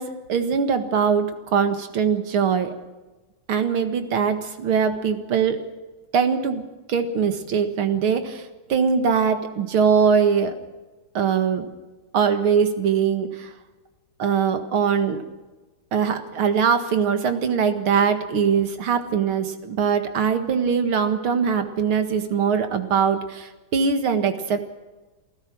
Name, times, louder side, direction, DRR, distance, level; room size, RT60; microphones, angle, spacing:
voice 1, 0.0-2.7 3.5-5.6 6.1-6.6 6.9-10.6 11.1-11.7 12.1-13.5 14.2-15.2 15.9-24.7, right 6 dB, 75° right, 7 dB, 2.6 m, -22 dB
28.0 x 15.5 x 6.3 m, 1.2 s
omnidirectional pair, 2.3 m